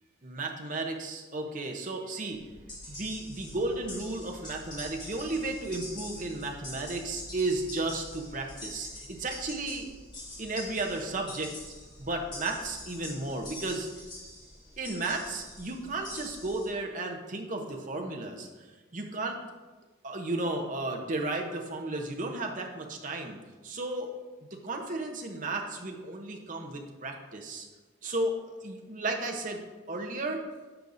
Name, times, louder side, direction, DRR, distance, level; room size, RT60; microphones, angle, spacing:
voice 1, 0.2-2.4 2.9-9.9 10.4-11.7 12.0-13.9 14.8-18.5 18.9-19.4 20.0-24.1 24.6-27.7 28.0-29.6 29.9-30.4, right 2 dB, 40° right, 2 dB, 0.9 m, -34 dB
sound 1, 2.3-16.7, left 1 dB, 25° left, 2.7 m, -44 dB
10.5 x 6.4 x 2.7 m, 1.3 s
head